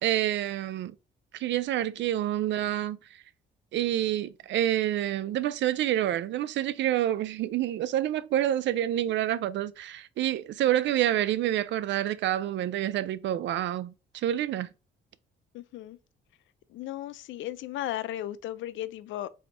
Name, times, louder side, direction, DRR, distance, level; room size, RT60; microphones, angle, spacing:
voice 1, 0.0-0.9 1.3-3.0 3.7-14.7, right 12 dB, 65° right, 0.4 m, -28 dB
voice 2, 15.5-16.0 16.7-19.3, left 13 dB, 75° left, 0.4 m, -35 dB
3.5 x 2.6 x 4.0 m
cardioid pair, 90°, 20 cm